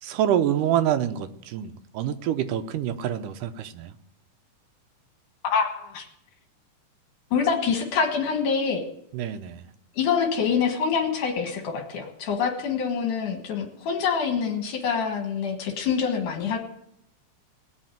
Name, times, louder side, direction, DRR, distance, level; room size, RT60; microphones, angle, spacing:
voice 1, 0.0-3.9 9.1-9.7, right 10 dB, 85° right, 10 dB, 2.4 m, -26 dB
voice 2, 5.4-6.1 7.3-8.8 9.9-16.6, left 6 dB, 75° left, 4 dB, 3.0 m, -25 dB
19.0 x 6.6 x 9.1 m, 0.75 s
omnidirectional pair, 3.7 m